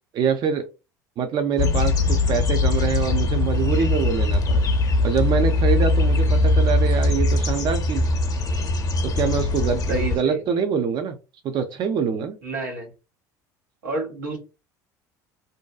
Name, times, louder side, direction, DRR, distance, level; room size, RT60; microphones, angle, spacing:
voice 1, 0.1-0.7 1.2-4.6 5.0-8.1 9.0-11.2 11.4-12.4, right 6 dB, 45° right, 6 dB, 0.4 m, -25 dB
sound 1, 1.6-10.2, left 2 dB, 40° left, 0.6 m, -21 dB
voice 2, 9.9-10.5 12.4-12.9 13.8-14.4, right 2 dB, 90° right, 1 dB, 1.1 m, -29 dB
2.6 x 2.2 x 2.2 m, 0.28 s
hypercardioid pair, 75°, 10 cm